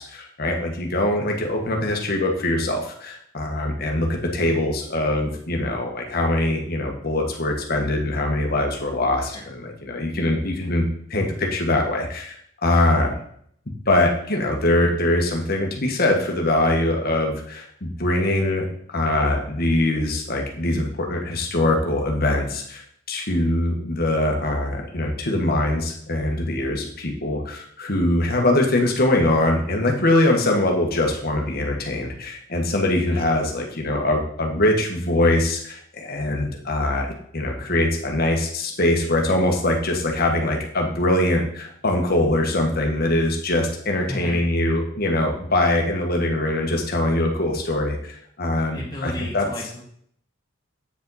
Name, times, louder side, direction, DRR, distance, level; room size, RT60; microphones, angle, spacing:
voice 1, 0.0-10.8 11.1-13.1 13.9-18.6 18.9-37.1 37.3-49.5, left 1 dB, 50° left, 2 dB, 1.4 m, -22 dB
voice 2, 44.0-44.5 48.7-49.8, left 1 dB, 20° left, -4 dB, 1.9 m, -34 dB
8.4 x 5.1 x 4.1 m, 0.65 s
head